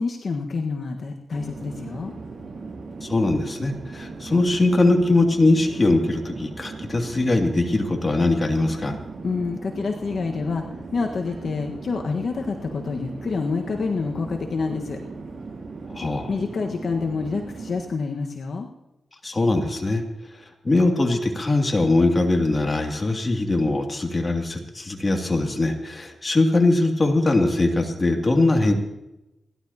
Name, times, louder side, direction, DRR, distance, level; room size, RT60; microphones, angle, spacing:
voice 1, 0.0-2.1 9.2-10.6 10.9-15.0 16.0-18.7, left 4 dB, 60° left, 2 dB, 1.4 m, -27 dB
Conversation / Chatter / Fixed-wing aircraft airplane, 1.3-18.0, right 3 dB, 55° right, 6.1 m, -38 dB
voice 2, 3.0-9.0 15.9-16.3 19.2-20.0 20.6-28.7, left 2 dB, 30° left, 2 dB, 2.6 m, -21 dB
29.5 x 12.0 x 2.9 m, 0.94 s
cardioid pair, 70°, 0 cm